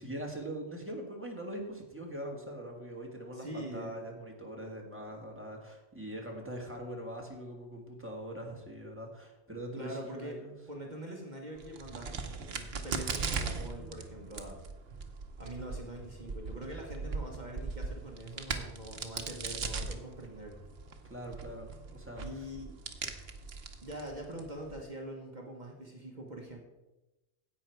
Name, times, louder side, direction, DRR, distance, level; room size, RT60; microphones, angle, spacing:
voice 1, 0.0-10.5 21.0-22.5, right 1 dB, 10° right, -1 dB, 1.9 m, -42 dB
voice 2, 3.3-4.0 9.7-10.4 10.7-14.6 15.4-20.6 22.2-22.7 23.8-26.6, right 1 dB, 40° right, 0 dB, 1.4 m, -43 dB
Crack, 11.6-24.8, right 4 dB, 65° right, 1.1 m, -40 dB
10.5 x 8.2 x 4.6 m, 1.0 s
omnidirectional pair, 1.2 m